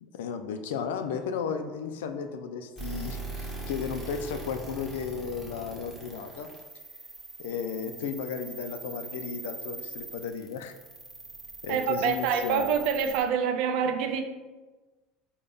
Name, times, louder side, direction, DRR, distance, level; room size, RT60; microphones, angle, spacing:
voice 1, 0.0-6.5 7.4-10.7 11.6-12.7, left 6 dB, 90° left, 8 dB, 0.3 m, -34 dB
sound 1, 2.8-13.2, right 3 dB, 5° right, 0.9 m, -41 dB
voice 2, 11.7-14.2, right 7 dB, 65° right, 7 dB, 0.4 m, -26 dB
3.9 x 2.2 x 3.4 m, 1.2 s
supercardioid pair, 110°, 0 cm